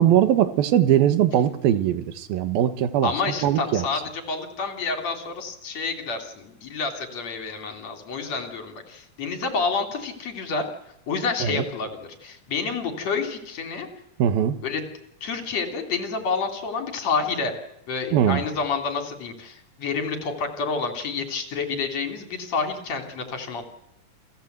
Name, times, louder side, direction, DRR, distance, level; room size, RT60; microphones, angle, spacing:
voice 1, 0.0-3.9 11.4-11.6 14.2-14.6 18.1-18.4, right 10 dB, 90° right, 11 dB, 3.2 m, -21 dB
voice 2, 3.0-4.0 4.3-10.7 11.1-13.9 14.6-14.8 15.2-17.5 17.9-23.6, left 4 dB, 50° left, 5 dB, 3.8 m, -29 dB
29.0 x 19.0 x 8.0 m, 0.86 s
omnidirectional pair, 4.1 m